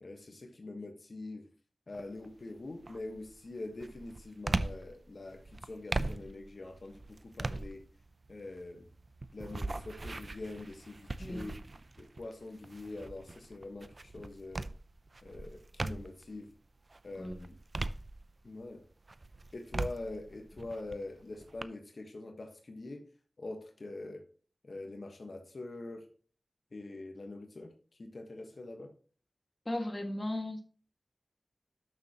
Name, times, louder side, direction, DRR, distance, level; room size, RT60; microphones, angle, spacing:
voice 1, 0.0-1.5 1.9-7.8 8.3-8.9 9.3-11.6 12.0-14.7 15.2-16.5 17.0-17.6 18.4-18.8 19.5-23.0 23.4-24.2 24.6-26.1 26.7-27.7 28.0-28.9, left 2 dB, 60° left, 1.4 m, -44 dB
sound 1, 1.9-2.3 2.8-16.3 16.8-18.6 19.0-21.6, right 2 dB, 50° right, 0.6 m, -40 dB
voice 2, 11.2-11.5 17.2-17.4 29.7-30.6, left 1 dB, 25° left, 1.9 m, -36 dB
12.5 x 6.7 x 3.0 m
wide cardioid pair, 65°, 0 cm